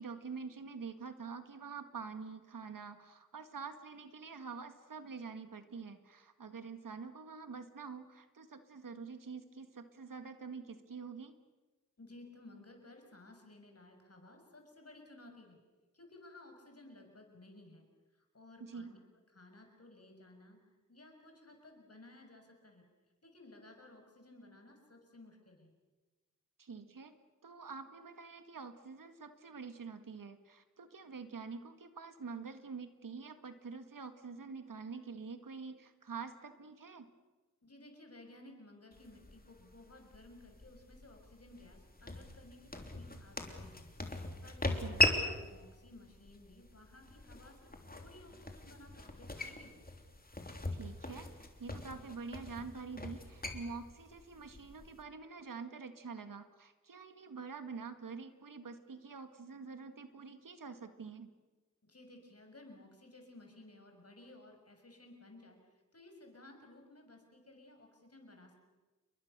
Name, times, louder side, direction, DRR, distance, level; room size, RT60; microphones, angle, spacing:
voice 1, 0.0-11.4 18.6-18.9 26.6-27.1 27.4-37.1 44.6-45.0 50.7-61.3, right 5 dB, 85° right, 9 dB, 1.9 m, -46 dB
voice 2, 12.0-15.6 15.9-17.8 18.1-19.0 19.3-20.6 20.9-22.8 23.2-25.7 37.6-43.9 44.4-47.6 47.9-49.9 61.8-68.5, left 2 dB, 50° left, 4 dB, 6.3 m, -57 dB
sound 1, 38.9-55.0, left 1 dB, 30° left, 3.3 m, -40 dB
29.0 x 22.5 x 6.8 m, 1.2 s
wide cardioid pair, 60°, 32 cm